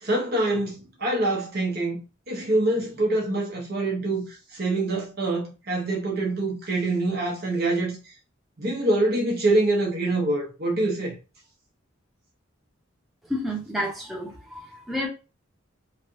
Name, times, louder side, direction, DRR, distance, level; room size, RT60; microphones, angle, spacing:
voice 1, 0.0-2.0 2.3-4.2 4.5-8.0 8.6-11.1, right 2 dB, 50° right, 0.9 m, -25 dB
voice 2, 13.3-15.1, equal, ahead, 0.8 m, -30 dB
3.1 x 2.5 x 2.7 m
head